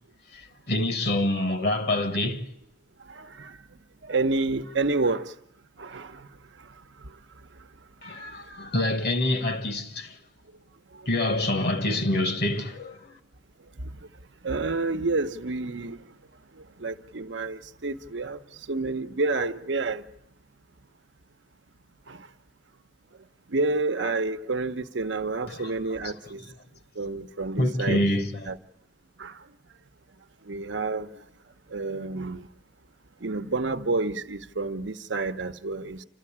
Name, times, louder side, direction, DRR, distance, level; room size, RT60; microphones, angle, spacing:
voice 1, 0.3-2.5 8.0-10.1 11.0-13.2 25.5-25.7 26.0-26.1 27.6-28.4, left 1 dB, 60° left, 1.5 m, -26 dB
voice 2, 3.1-3.6 4.0-5.3 5.8-6.3 13.8-13.9 14.4-16.0 16.6-18.4 18.7-20.0 22.1-22.3 23.5-26.4 27.0-28.1 28.4-28.6 29.2-29.4 30.5-31.1 31.7-32.5 33.2-36.0, right 3 dB, 80° right, 0.9 m, -29 dB
28.0 x 13.5 x 8.7 m
head